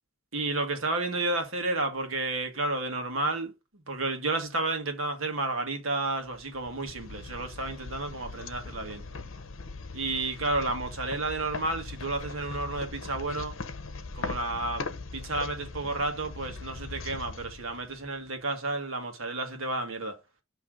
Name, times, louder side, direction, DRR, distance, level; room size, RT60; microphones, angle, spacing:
voice 1, 0.3-3.5 3.9-9.0 9.9-13.6 14.1-14.9 15.1-20.2, right 2 dB, 75° right, 1.5 m, -31 dB
sound 1, 6.2-18.3, left 3 dB, 70° left, 0.8 m, -40 dB
7.4 x 3.2 x 4.9 m
head